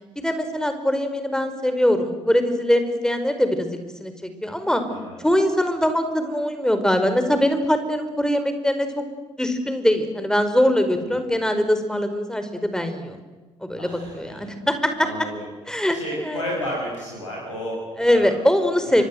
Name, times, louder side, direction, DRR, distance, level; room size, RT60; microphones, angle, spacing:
voice 1, 0.1-4.8 5.2-9.0 9.4-13.2 13.6-15.1 15.7-16.4 18.0-19.0, equal, 5° left, 8 dB, 5.0 m, -22 dB
voice 2, 10.9-11.4 13.8-14.5 15.0-15.5 15.9-18.3 18.8-19.0, equal, 80° left, -3 dB, 6.9 m, -33 dB
29.5 x 25.0 x 7.9 m, 1.3 s
figure-of-eight pair, 45°, 16 cm